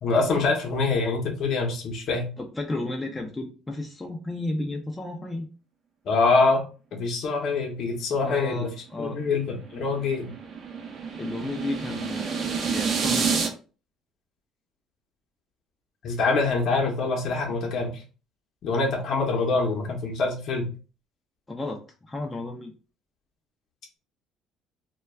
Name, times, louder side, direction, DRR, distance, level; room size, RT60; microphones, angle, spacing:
voice 1, 0.0-2.3 6.1-6.6 6.9-8.7 9.0-10.3 16.0-17.9 18.6-20.7, left 3 dB, 60° left, 1 dB, 0.7 m, -25 dB
voice 2, 2.4-5.5 8.2-9.2 11.1-13.4 21.5-22.7, left 2 dB, 15° left, 2 dB, 0.4 m, -33 dB
sound 1, 9.2-13.5, right 6 dB, 45° right, 0.6 m, -29 dB
2.2 x 2.2 x 3.3 m, 0.35 s
cardioid pair, 105°, 0 cm